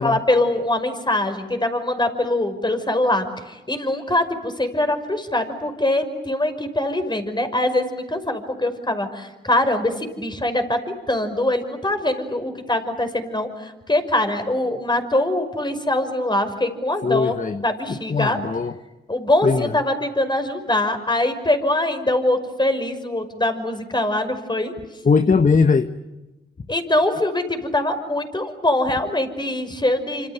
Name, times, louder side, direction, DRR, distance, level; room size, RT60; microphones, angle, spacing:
voice 1, 0.0-17.3 17.6-18.4 19.1-24.7 26.7-30.3, left 1 dB, 20° left, 8 dB, 5.8 m, -23 dB
voice 2, 17.0-18.8 19.4-19.8 25.0-25.9, left 5 dB, 40° left, 11 dB, 1.2 m, -20 dB
26.5 x 26.5 x 8.2 m, 1.0 s
supercardioid pair, 50°, 21 cm